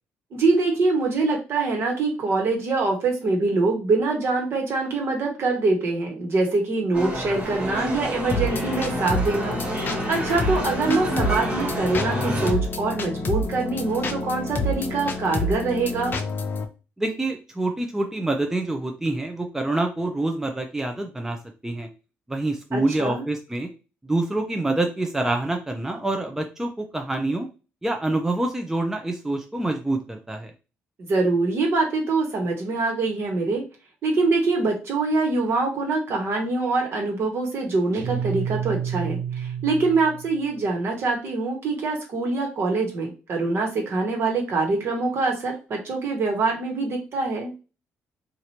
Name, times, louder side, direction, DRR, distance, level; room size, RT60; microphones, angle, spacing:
voice 1, 0.3-9.6 10.1-16.2 22.7-23.2 31.0-33.6 34.0-47.5, right 3 dB, 55° right, 1 dB, 1.3 m, -24 dB
sound 1, 6.9-12.5, right 1 dB, 30° right, 1.6 m, -29 dB
sound 2, 8.3-16.6, left 2 dB, 45° left, 0.6 m, -28 dB
voice 2, 17.0-21.4 21.6-21.9 22.3-23.7 24.0-27.5 27.8-30.5, right 2 dB, 10° right, 4 dB, 0.5 m, -26 dB
Guitar, 37.9-40.5, right 8 dB, 70° right, 0.7 m, -30 dB
3.0 x 2.5 x 2.8 m, 0.31 s
cardioid pair, 90°, 5 cm